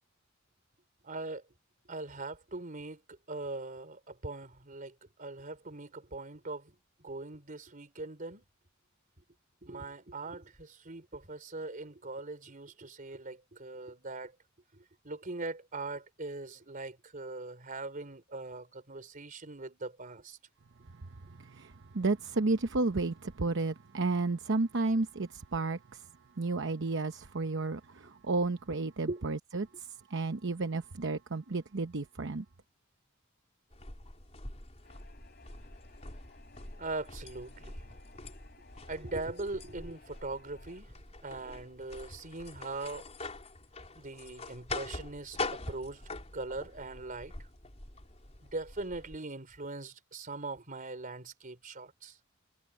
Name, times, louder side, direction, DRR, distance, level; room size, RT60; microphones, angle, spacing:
voice 1, 1.0-1.4 1.9-8.4 9.6-14.3 14.7-20.4 29.1-29.2 36.8-38.0 38.9-43.1 43.9-47.3 48.4-52.2, right 2 dB, 40° right, 4.1 m, -41 dB
voice 2, 21.0-26.1 26.4-32.4, right 3 dB, 60° right, 0.9 m, -32 dB
sound 1, 33.7-49.2, left 3 dB, 35° left, 4.1 m, -44 dB
sound 2, 34.8-40.8, left 4 dB, 50° left, 3.7 m, -60 dB
head